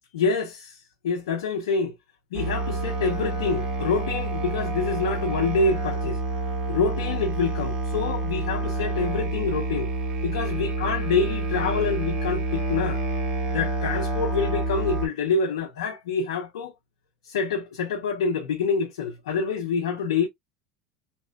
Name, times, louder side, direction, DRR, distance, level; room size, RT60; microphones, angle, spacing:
voice 1, 0.1-1.9 2.3-6.2 6.7-9.9 10.2-13.0 13.5-16.7 17.2-20.3, left 5 dB, 90° left, 0.5 m, -26 dB
Musical instrument, 2.3-15.1, right 2 dB, 40° right, 1.2 m, -28 dB
2.8 x 2.1 x 2.2 m
hypercardioid pair, 95°, 3 cm